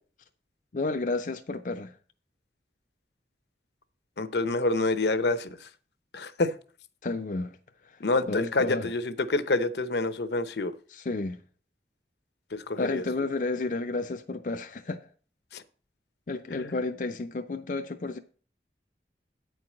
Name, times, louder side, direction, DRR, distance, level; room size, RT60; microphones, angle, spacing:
voice 1, 0.7-2.0 7.0-7.6 7.8-8.0 8.3-8.9 10.9-11.4 12.8-15.0 16.3-18.2, left 3 dB, 45° left, 0.5 m, -31 dB
voice 2, 4.2-5.7 6.1-6.5 8.0-10.7 12.5-13.0 15.5-15.6 16.6-16.7, left 2 dB, 75° left, 0.8 m, -27 dB
9.1 x 4.7 x 7.4 m
head